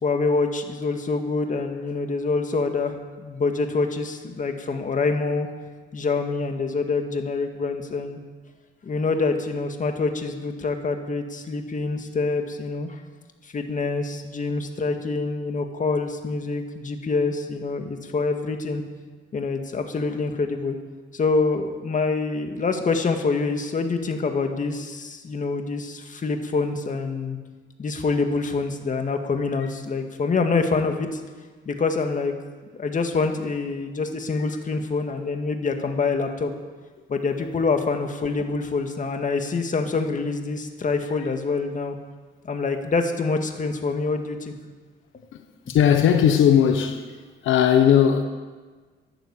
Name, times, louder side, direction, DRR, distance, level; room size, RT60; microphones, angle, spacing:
voice 1, 0.0-5.5 5.9-8.2 8.8-13.0 13.4-18.8 19.3-20.8 21.1-27.4 27.8-31.2 31.7-32.3 32.7-36.5 37.1-42.0 42.4-44.5, left 4 dB, 40° left, 5 dB, 2.0 m, -26 dB
voice 2, 45.3-47.1 47.4-48.2, left 9 dB, 80° left, 6 dB, 1.1 m, -18 dB
12.0 x 11.5 x 8.4 m, 1.4 s
cardioid pair, 90°, 20 cm